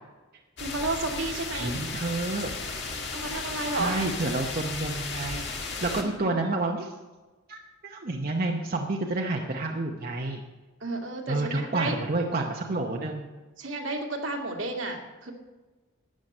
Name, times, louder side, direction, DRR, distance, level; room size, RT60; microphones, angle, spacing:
sound 1, 0.6-6.0, left 4 dB, 60° left, 1.7 m, -35 dB
voice 1, 0.6-1.8 3.1-4.0 6.0-6.6 10.8-12.0 13.6-15.3, right 2 dB, 75° right, 1 dB, 2.1 m, -32 dB
voice 2, 1.6-2.5 3.7-5.5 5.8-6.9 7.5-10.4 11.3-13.3, right 2 dB, 45° right, 0 dB, 0.9 m, -29 dB
13.0 x 8.9 x 5.4 m, 1.2 s
head